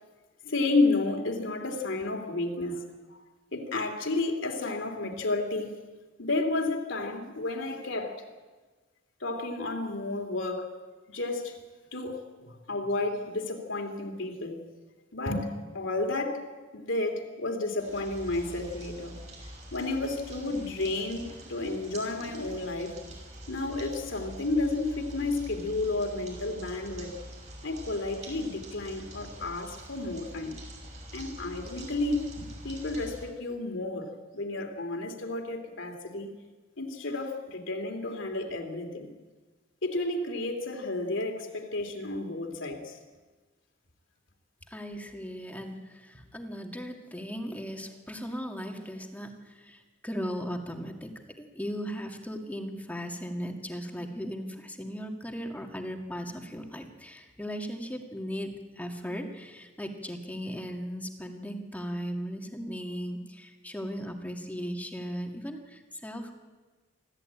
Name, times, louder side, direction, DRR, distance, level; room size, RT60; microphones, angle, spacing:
voice 1, 0.4-2.8 3.1-3.2 3.5-5.8 6.2-8.2 9.2-10.7 11.1-11.6 11.9-14.6 15.1-16.5 16.7-19.2 19.7-23.0 23.5-27.1 27.6-30.6 31.1-36.3 36.8-39.1 39.8-43.0, left 2 dB, 70° left, 3 dB, 2.8 m, -31 dB
sound 1, 17.8-33.2, right 1 dB, 35° right, 6.0 m, -45 dB
voice 2, 44.7-51.1 51.4-66.4, equal, 10° left, 3 dB, 2.0 m, -37 dB
24.5 x 13.5 x 8.8 m, 1.3 s
head